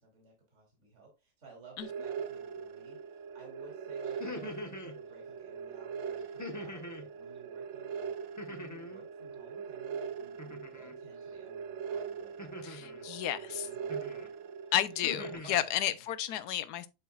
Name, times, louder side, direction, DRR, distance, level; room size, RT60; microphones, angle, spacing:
voice 1, 0.0-8.1 8.4-14.3 15.4-15.9, right 3 dB, 45° right, 2.9 m, -56 dB
sound 1, 1.8-15.3, right 6 dB, 65° right, 0.7 m, -41 dB
sound 2, 4.1-5.0 6.4-7.1 8.4-9.0 10.4-11.0 12.4-13.0 13.9-14.3 14.7-15.6, left 2 dB, 15° left, 0.7 m, -43 dB
voice 2, 12.6-13.7 14.7-16.9, left 11 dB, 75° left, 1.2 m, -32 dB
11.0 x 4.4 x 2.3 m
omnidirectional pair, 1.8 m